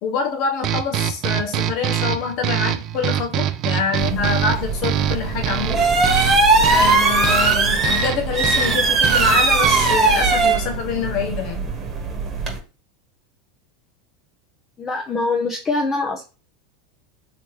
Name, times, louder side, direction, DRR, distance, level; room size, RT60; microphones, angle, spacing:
voice 1, 0.0-5.9 6.7-11.7, left 5 dB, 60° left, 3 dB, 1.1 m, -25 dB
sound 1, 0.6-10.2, right 10 dB, 50° right, 0.5 m, -25 dB
sound 2, 4.0-12.6, right 3 dB, 30° right, 1.3 m, -19 dB
voice 2, 14.8-16.2, left 3 dB, 25° left, 1 dB, 0.8 m, -23 dB
3.2 x 3.1 x 3.2 m, 0.32 s
hypercardioid pair, 100°, 0 cm